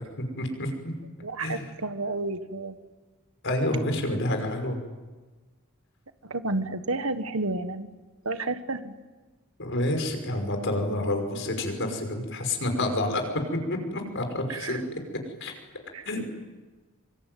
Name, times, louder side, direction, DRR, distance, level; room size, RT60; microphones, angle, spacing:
voice 1, 0.4-0.9 1.4-1.6 3.4-4.8 9.6-15.0 15.4-15.6 16.1-16.3, left 1 dB, 60° left, 5 dB, 5.6 m, -28 dB
voice 2, 1.2-2.8 6.2-7.9 8.2-8.9 14.5-14.8 15.9-16.1, right 2 dB, 70° right, 10 dB, 1.6 m, -31 dB
25.5 x 25.0 x 9.4 m, 1.3 s
head